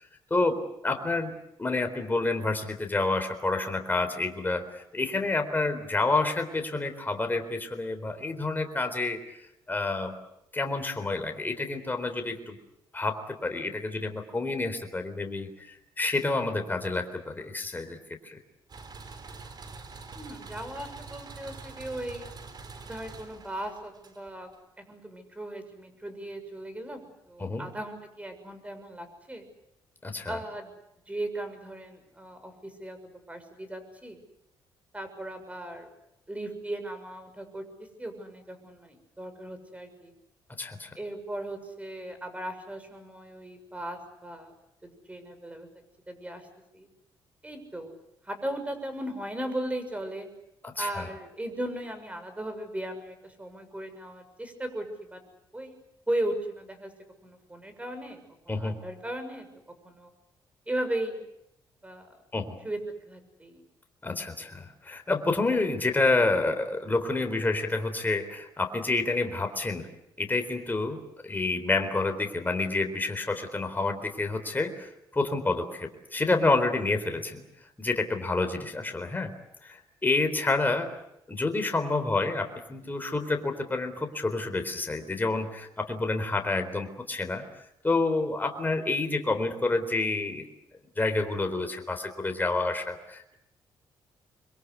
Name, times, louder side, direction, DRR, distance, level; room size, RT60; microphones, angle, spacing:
voice 1, 0.3-9.2 9.7-10.2 10.5-12.6 12.9-18.0 18.2-18.4 27.4-27.7 30.0-30.4 40.6-40.9 50.6-51.1 58.5-58.8 62.3-62.6 64.0-69.9 70.2-77.4 77.8-79.3 79.6-80.9 81.3-87.4 87.8-90.5 91.0-93.3, left 3 dB, 20° left, 5 dB, 4.0 m, -29 dB
sound 1, 18.7-24.6, right 4 dB, 50° right, 4.4 m, -45 dB
voice 2, 20.1-22.3 22.8-24.5 24.8-29.4 30.2-30.7 31.1-34.2 34.9-35.9 36.3-37.6 38.0-40.1 40.9-44.5 44.8-45.7 46.1-46.5 46.7-46.9 47.4-47.9 48.2-50.3 50.8-55.2 55.5-55.7 56.1-56.9 57.2-58.2 58.4-59.5 59.8-60.1 60.7-61.3 61.8-62.1 62.6-62.8 63.1-63.6, right 1 dB, 15° right, 9 dB, 6.7 m, -37 dB
26.5 x 23.0 x 8.3 m, 0.82 s
cardioid pair, 80°, 9 cm